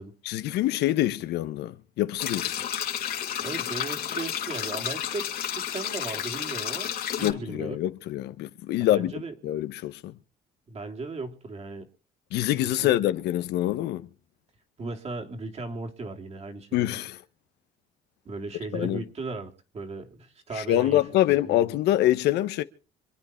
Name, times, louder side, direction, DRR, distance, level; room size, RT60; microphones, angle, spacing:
voice 1, 0.2-2.6 7.2-10.1 12.3-14.1 16.7-17.2 18.7-19.0 20.5-22.6, left 14 dB, 80° left, 1.0 m, -25 dB
sound 1, 2.2-7.3, left 10 dB, 60° left, 2.4 m, -31 dB
voice 2, 3.4-7.8 8.8-9.3 10.7-11.9 12.6-12.9 14.8-17.0 18.2-21.0 21.5-21.6, right 3 dB, 40° right, 3.1 m, -37 dB
26.0 x 9.3 x 4.4 m
cardioid pair, 110°, 17 cm